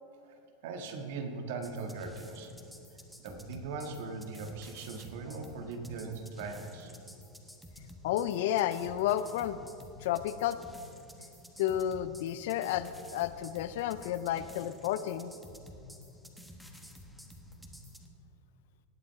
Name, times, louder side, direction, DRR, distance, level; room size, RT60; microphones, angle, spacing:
voice 1, 0.6-2.5 3.2-6.9, right 4 dB, 70° right, 4 dB, 1.7 m, -40 dB
sound 1, 1.6-18.1, left 1 dB, ahead, 1.3 m, -51 dB
voice 2, 8.0-9.6 10.0-10.6 11.6-15.3, left 11 dB, 70° left, 13 dB, 0.5 m, -31 dB
19.0 x 7.7 x 4.7 m, 2.7 s
supercardioid pair, 120°, 0 cm